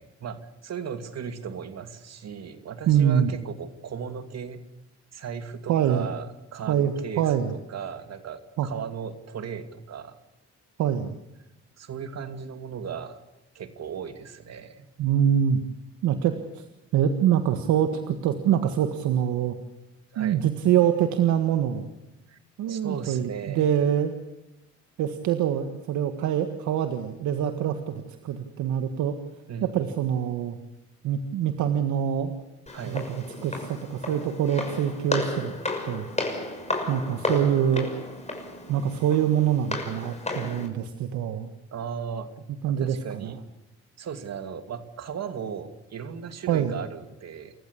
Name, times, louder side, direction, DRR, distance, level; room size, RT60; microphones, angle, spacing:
voice 1, 0.0-4.6 5.1-10.2 11.8-13.2 13.5-14.9 20.1-20.5 22.3-22.4 22.7-23.7 29.5-29.8 32.7-33.1 41.7-42.3 42.7-43.4 44.0-47.5, right 7 dB, 60° right, 9 dB, 2.6 m, -37 dB
voice 2, 2.9-3.3 5.7-6.1 6.7-7.5 8.6-8.7 10.8-11.1 15.0-15.6 16.0-16.6 16.9-19.6 20.2-21.9 22.6-24.2 25.0-29.2 29.6-30.6 31.0-32.4 32.8-35.5 35.9-36.0 36.9-37.9 38.7-41.5 42.6-43.4 46.5-46.7, right 9 dB, 85° right, 7 dB, 1.7 m, -25 dB
Walk footsteps, 32.7-40.7, left 2 dB, 25° left, 6.1 m, -33 dB
28.5 x 15.0 x 8.5 m, 0.91 s
supercardioid pair, 65°, 29 cm